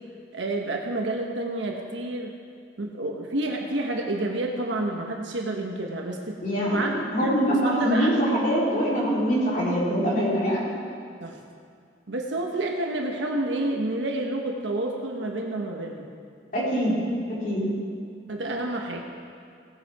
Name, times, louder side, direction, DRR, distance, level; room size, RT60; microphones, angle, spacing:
voice 1, 0.3-2.3 2.8-6.4 6.7-8.1 9.9-10.2 11.2-11.4 12.1-16.1 18.3-19.1, right 2 dB, 85° right, 1 dB, 1.2 m, -29 dB
voice 2, 6.4-10.6 16.5-16.9 17.4-17.7, equal, 45° left, -7 dB, 3.7 m, -24 dB
17.0 x 8.4 x 4.8 m, 2.2 s
head